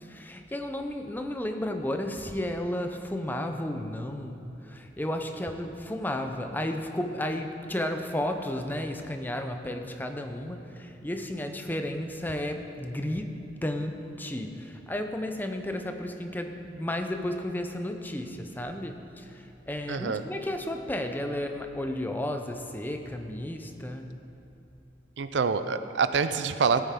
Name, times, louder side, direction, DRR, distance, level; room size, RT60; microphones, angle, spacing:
voice 1, 0.0-24.1, left 1 dB, 10° left, 5 dB, 0.6 m, -33 dB
voice 2, 19.9-20.2 25.2-26.8, right 5 dB, 85° right, 11 dB, 0.5 m, -26 dB
17.0 x 9.0 x 3.7 m, 2.7 s
head